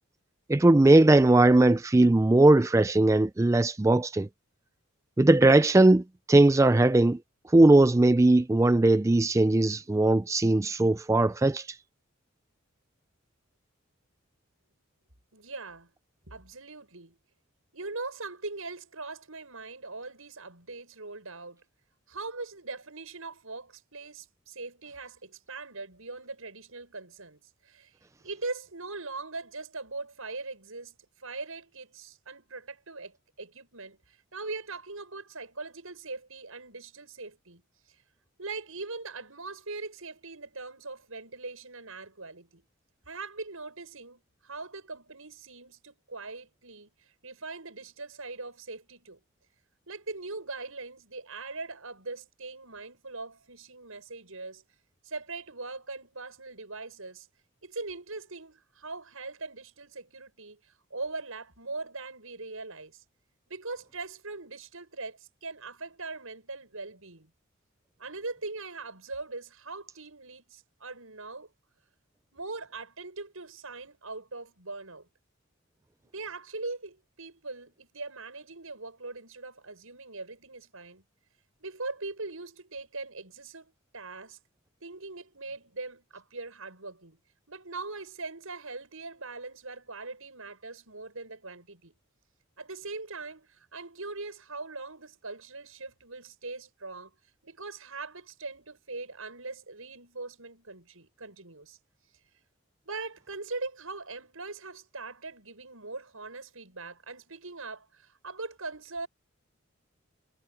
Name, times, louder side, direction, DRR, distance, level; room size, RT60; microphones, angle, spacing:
voice 1, 0.5-4.3 5.2-7.2 7.5-11.7, right 2 dB, 15° right, 0.3 m, -20 dB
voice 2, 15.3-15.9 16.3-17.2 17.7-21.6 22.1-27.9 28.2-37.6 38.4-42.6 43.0-46.9 47.2-49.2 49.9-54.6 55.0-57.3 57.6-60.6 60.9-63.0 63.5-67.3 68.0-71.5 72.3-75.1 76.1-81.0 81.6-84.4 84.8-87.2 87.5-91.9 92.6-97.1 97.4-101.8 102.8-109.1, right 3 dB, 80° right, 6.8 m, -41 dB
head